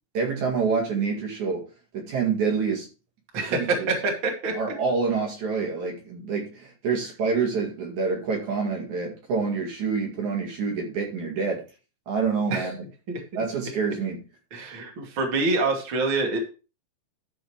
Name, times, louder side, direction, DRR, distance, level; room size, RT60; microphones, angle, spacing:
voice 1, 0.1-1.7 1.9-2.9 3.4-3.9 4.5-11.6 12.1-12.8 13.3-14.2, right 5 dB, 60° right, 3.3 m, -27 dB
voice 2, 3.3-4.5 12.5-12.7 13.1-13.2 14.5-16.4, right 3 dB, 40° right, 2.8 m, -26 dB
13.0 x 4.7 x 4.8 m
omnidirectional pair, 4.2 m